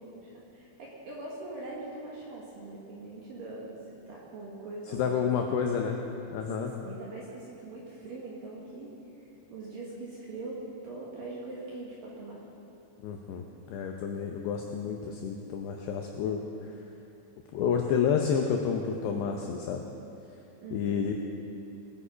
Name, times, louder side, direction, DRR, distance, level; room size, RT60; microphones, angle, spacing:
voice 1, 0.0-5.2 6.5-12.4 20.6-21.0, right 2 dB, 65° right, -4 dB, 2.4 m, -42 dB
voice 2, 4.9-6.0 6.3-6.7 13.0-16.7 17.5-19.8 20.7-21.1, left 7 dB, 85° left, 2 dB, 2.4 m, -30 dB
21.0 x 8.3 x 5.1 m, 2.8 s
omnidirectional pair, 5.8 m